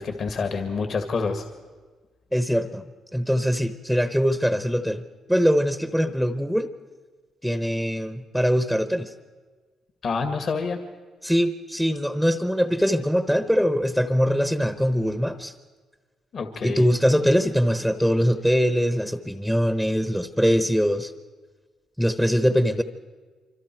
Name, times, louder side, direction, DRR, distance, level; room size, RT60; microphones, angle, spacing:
voice 1, 0.0-1.4 10.0-10.8 16.3-16.9, left 4 dB, 55° left, 6 dB, 2.0 m, -27 dB
voice 2, 2.3-2.9 3.1-5.0 5.3-6.7 7.4-9.1 11.2-15.5 16.6-21.1 22.0-22.8, equal, ahead, 10 dB, 1.0 m, -22 dB
25.5 x 25.5 x 4.6 m, 1.4 s
cardioid pair, 90°, 0 cm